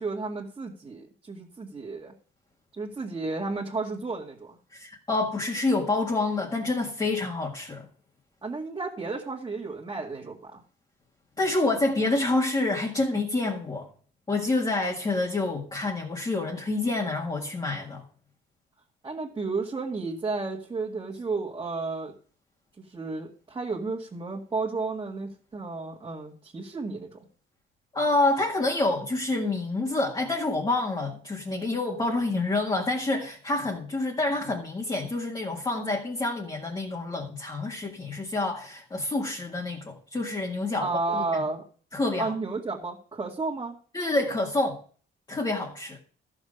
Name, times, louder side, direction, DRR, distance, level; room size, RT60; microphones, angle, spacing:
voice 1, 0.0-2.1 2.7-4.6 8.4-10.6 19.0-22.1 22.8-27.2 40.8-41.6 42.2-43.8, right 3 dB, 20° right, 2.1 m, -32 dB
voice 2, 4.7-7.9 11.4-13.9 14.3-18.0 27.9-41.2 41.9-42.3 43.9-44.8 45.3-46.0, left 2 dB, 20° left, 1.8 m, -27 dB
14.0 x 6.5 x 6.5 m
cardioid pair, 160°, 20 cm